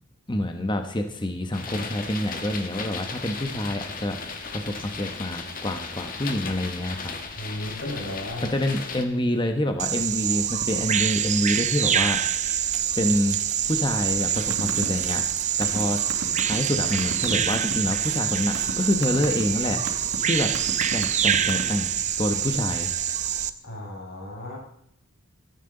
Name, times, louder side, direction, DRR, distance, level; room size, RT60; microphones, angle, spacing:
voice 1, 0.3-7.1 8.4-12.5 13.0-13.4 13.7-15.2 15.6-16.0 16.4-19.8 20.2-20.5 20.9-21.9 22.2-22.9, left 1 dB, 25° left, 6 dB, 1.1 m, -27 dB
sound 1, 1.5-9.0, left 4 dB, 45° left, 1.6 m, -36 dB
voice 2, 7.4-8.5 23.6-24.6, left 1 dB, 90° left, -1 dB, 5.5 m, -34 dB
Bird vocalization bird call bird song, 9.8-23.5, right 9 dB, 35° right, 0.6 m, -25 dB
sound 2, 14.4-14.9 15.1-17.7 18.3-18.7 19.0-19.4 19.9-20.2 20.5-21.8, right 1 dB, 80° right, 3.3 m, -32 dB
16.5 x 13.5 x 3.9 m, 0.75 s
head